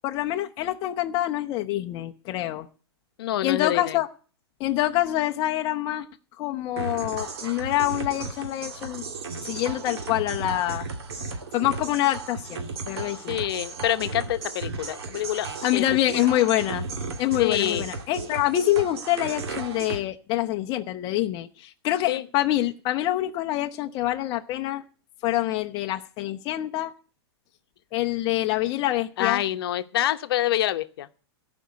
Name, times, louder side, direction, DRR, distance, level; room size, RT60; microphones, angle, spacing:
voice 1, 0.0-2.7 3.4-4.1 4.6-6.1 6.4-9.0 9.5-10.9 11.5-13.4 15.6-16.9 17.2-24.8 25.2-26.9 27.9-29.4, left 14 dB, 30° left, 4 dB, 0.7 m, -26 dB
voice 2, 3.2-4.0 13.2-15.8 16.1-16.3 17.4-17.8 22.1-22.2 29.2-31.1, left 13 dB, 60° left, 10 dB, 0.9 m, -26 dB
sound 1, 6.8-20.0, right 4 dB, 70° right, 2.2 m, -35 dB
14.5 x 5.3 x 9.4 m, 0.40 s
hypercardioid pair, 150°, 14 cm